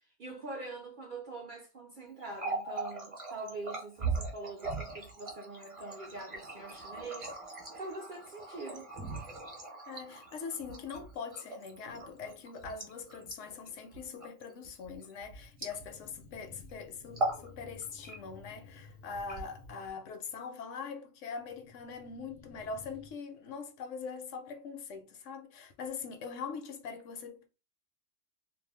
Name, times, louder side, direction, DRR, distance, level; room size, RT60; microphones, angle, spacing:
voice 1, 0.2-7.3 7.8-8.9, right 2 dB, 60° right, 0.5 m, -44 dB
Water tap faucet, 2.2-16.2 16.5-16.7 17.1-17.5 17.8-18.5 19.1-19.9, right 3 dB, 30° right, 0.8 m, -40 dB
voice 2, 9.9-27.5, left 5 dB, 75° left, 0.9 m, -42 dB
sound 1, 11.8-12.5 13.4-14.4 15.1-20.0 21.4-23.1, left 4 dB, 45° left, 0.6 m, -55 dB
2.4 x 2.1 x 3.2 m
omnidirectional pair, 1.3 m